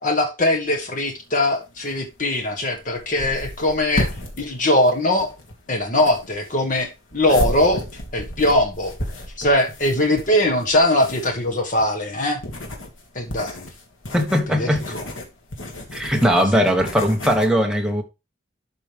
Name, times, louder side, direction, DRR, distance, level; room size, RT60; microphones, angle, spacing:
voice 1, 0.0-4.1 4.4-5.3 5.7-7.8 8.1-8.9 9.4-12.4 13.1-13.7 14.5-15.0, left 1 dB, 40° left, 1.6 m, -21 dB
sound 1, 0.7-17.5, left 1 dB, 85° left, 2.0 m, -33 dB
voice 2, 14.1-14.8 15.9-18.0, equal, 5° right, 1.2 m, -19 dB
11.5 x 5.0 x 3.4 m
head